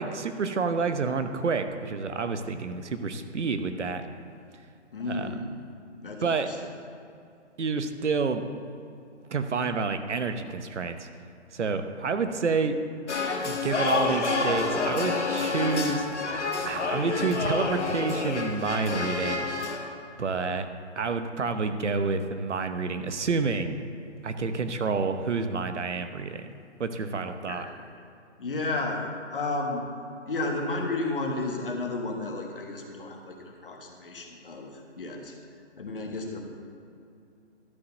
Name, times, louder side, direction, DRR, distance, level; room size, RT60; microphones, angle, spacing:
voice 1, 0.0-4.0 5.1-5.3 6.2-6.5 7.6-8.4 9.3-11.0 11.5-12.8 13.5-16.1 16.6-19.5 20.2-20.7 21.0-23.7 24.2-26.5 26.8-27.7, right 4 dB, 75° right, 8 dB, 0.9 m, -29 dB
voice 2, 4.9-5.5 6.0-6.6 27.4-27.7 28.4-29.0 29.3-29.8 30.3-34.7 35.0-35.3 35.8-36.4, left 2 dB, 50° left, 2 dB, 1.4 m, -32 dB
sound 1, 13.1-19.8, left 4 dB, 70° left, 1.5 m, -28 dB
12.0 x 5.1 x 6.6 m, 2.5 s
hypercardioid pair, 170°, 36 cm